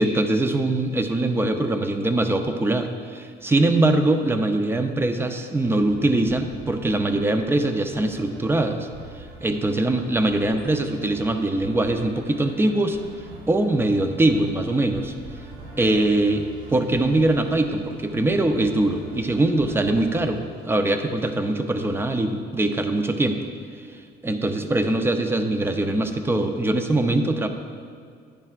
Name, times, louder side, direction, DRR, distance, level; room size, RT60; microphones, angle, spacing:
voice 1, 0.0-8.9 9.1-13.0 13.5-15.1 15.8-23.4 24.2-27.5, right 2 dB, 15° right, 7 dB, 0.6 m, -22 dB
sound 1, 5.6-20.3, right 2 dB, 80° right, 1.8 m, -44 dB
sound 2, 15.7-22.0, left 1 dB, 45° right, 2.1 m, -48 dB
11.0 x 10.0 x 2.5 m, 2.2 s
cardioid pair, 110°, 17 cm